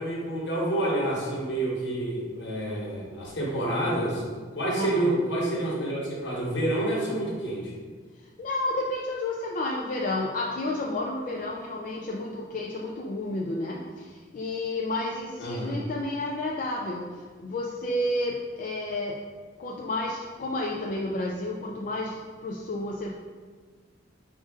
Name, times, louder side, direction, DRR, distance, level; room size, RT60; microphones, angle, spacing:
voice 1, 0.0-4.2 4.5-7.7 15.4-15.8, right 1 dB, 70° left, -4 dB, 1.2 m, -28 dB
voice 2, 4.8-5.1 8.4-19.2 19.6-23.1, left 1 dB, 45° left, -2 dB, 0.4 m, -31 dB
5.2 x 2.6 x 3.6 m, 1.5 s
head